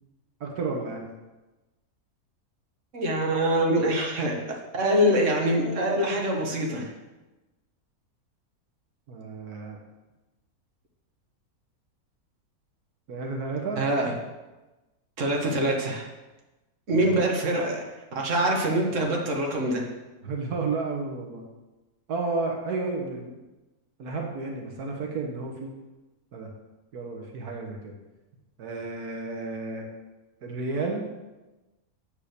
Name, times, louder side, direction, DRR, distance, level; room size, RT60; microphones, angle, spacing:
voice 1, 0.4-1.1 9.1-9.8 13.1-13.8 16.9-17.1 20.2-21.4 22.1-23.4 24.0-25.7 26.3-26.5 26.9-28.0 28.6-29.9 30.4-31.1, right 3 dB, 85° right, 1 dB, 1.7 m, -32 dB
voice 2, 2.9-6.9 13.8-14.1 15.2-16.1 16.9-17.8 18.1-19.8, right 1 dB, 55° right, 0 dB, 1.8 m, -24 dB
8.4 x 5.5 x 6.6 m, 1.1 s
omnidirectional pair, 1.6 m